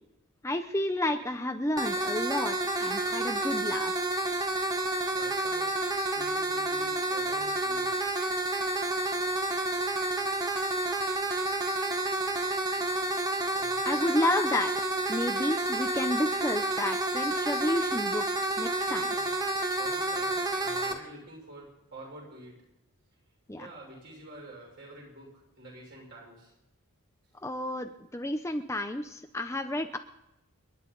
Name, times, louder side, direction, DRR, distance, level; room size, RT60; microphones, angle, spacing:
voice 1, 0.4-3.9 13.8-14.7 15.1-18.2 18.6-19.2 23.5-23.7 27.4-30.0, left 1 dB, 15° left, 6 dB, 0.7 m, -31 dB
sound 1, 1.8-20.9, right 2 dB, 15° right, 1.4 m, -30 dB
voice 2, 5.1-5.8 6.1-8.0 13.6-13.8 19.1-19.3 19.6-22.6 23.5-26.5, right 1 dB, 50° right, -2 dB, 6.5 m, -48 dB
29.5 x 10.5 x 4.0 m, 0.89 s
head